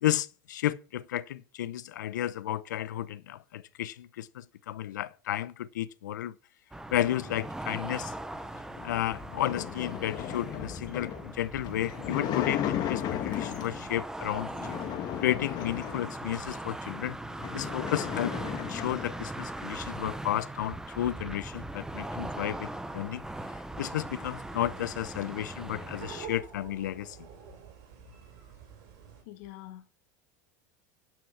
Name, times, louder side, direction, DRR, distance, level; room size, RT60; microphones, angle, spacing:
voice 1, 0.0-6.3 6.9-8.1 8.8-14.5 15.2-17.2 17.5-23.2 23.8-27.2, left 12 dB, 90° left, 0.8 m, -32 dB
sound 1, 6.7-26.3, right 1 dB, 5° right, 0.8 m, -40 dB
sound 2, 8.7-13.9 14.5-16.5 17.0-17.1 17.3-19.2, left 11 dB, 45° left, 1.7 m, -35 dB
sound 3, 24.0-29.2, right 7 dB, 60° right, 4.0 m, -48 dB
voice 2, 29.3-29.9, left 15 dB, 70° left, 2.1 m, -45 dB
12.0 x 6.0 x 5.9 m
supercardioid pair, 115°, 10 cm